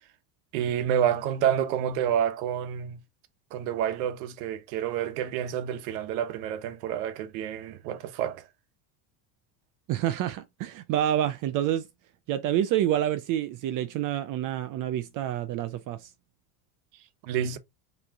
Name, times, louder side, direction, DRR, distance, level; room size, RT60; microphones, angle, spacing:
voice 1, 0.5-3.0 3.5-8.4 17.2-17.6, right 9 dB, 80° right, 1.0 m, -28 dB
voice 2, 9.9-11.8 12.3-16.0, right 11 dB, 45° right, 0.5 m, -28 dB
4.8 x 3.2 x 3.5 m
cardioid pair, 140°, 47 cm